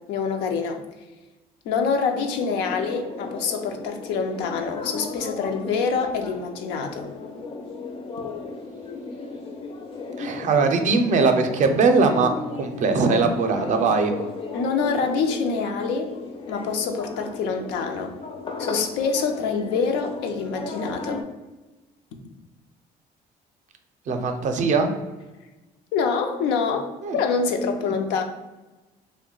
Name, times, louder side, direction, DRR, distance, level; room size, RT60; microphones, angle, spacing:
voice 1, 0.1-0.8 1.6-7.1 14.5-16.1 16.5-18.1 18.6-21.2 25.9-28.2, left 5 dB, 90° left, 5 dB, 0.5 m, -26 dB
sound 1, 2.2-21.2, left 3 dB, 35° left, 0.4 m, -36 dB
voice 2, 10.2-14.1 24.1-24.9 27.0-27.2 27.8-27.9, right 4 dB, 45° right, 6 dB, 0.4 m, -21 dB
2.8 x 2.1 x 3.7 m, 1.1 s
cardioid pair, 110°, 17 cm